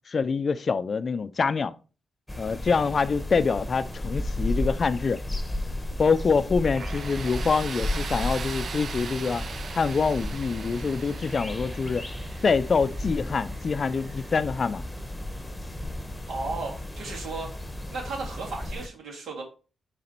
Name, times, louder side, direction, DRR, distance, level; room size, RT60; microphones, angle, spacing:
voice 1, 0.1-1.7 2.4-5.2 6.0-9.5 9.7-12.1 12.4-14.8, left 5 dB, 45° left, 0.4 m, -25 dB
sound 1, 2.3-18.9, left 1 dB, 10° left, 1.0 m, -34 dB
Tools, 6.8-15.5, right 6 dB, 55° right, 0.3 m, -40 dB
voice 2, 16.3-17.5 17.9-19.4, right 3 dB, 80° right, 3.0 m, -35 dB
6.6 x 4.1 x 4.4 m
cardioid pair, 90°, 0 cm